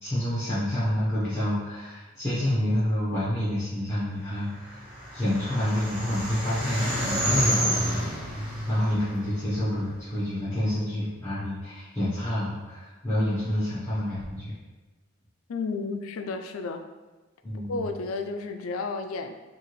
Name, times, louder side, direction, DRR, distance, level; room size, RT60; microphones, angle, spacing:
voice 1, 0.0-4.8 5.1-14.5 17.4-17.9, left 1 dB, 15° left, -13 dB, 1.0 m, -28 dB
sound 1, 4.5-10.0, right 1 dB, 5° right, 1.5 m, -29 dB
voice 2, 15.5-16.8 17.7-19.3, left 3 dB, 85° left, 6 dB, 0.4 m, -32 dB
4.7 x 2.5 x 3.1 m, 1.2 s
head